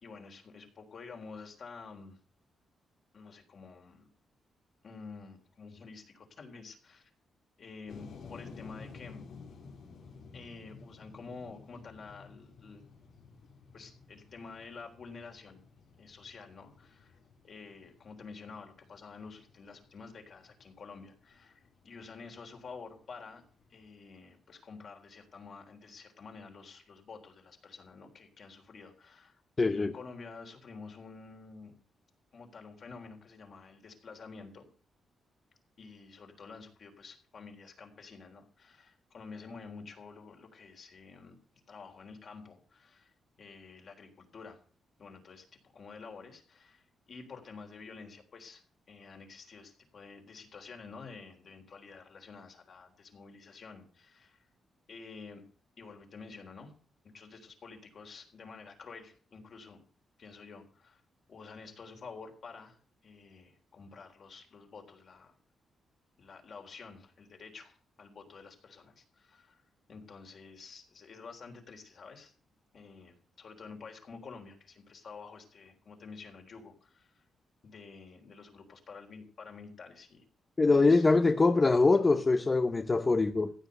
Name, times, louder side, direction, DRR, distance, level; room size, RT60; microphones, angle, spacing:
voice 1, 0.0-2.2 3.1-4.1 4.8-7.1 7.6-9.2 10.3-12.8 13.7-15.6 16.0-17.1 17.4-23.4 23.7-31.8 32.3-34.7 35.8-41.4 41.7-43.1 43.4-44.6 45.0-48.6 48.9-54.5 54.9-55.4 55.8-56.7 57.1-59.8 60.2-61.0 61.3-65.3 66.2-69.6 69.9-72.3 72.7-77.3 77.6-80.3 80.8-81.0 81.7-81.8, left 4 dB, 50° left, 3.8 m, -49 dB
sound 1, 7.9-23.9, left 4 dB, 75° left, 3.0 m, -53 dB
voice 2, 29.6-29.9 80.6-83.5, left 3 dB, 25° left, 0.7 m, -24 dB
15.5 x 9.0 x 6.6 m
cardioid pair, 120°, 0 cm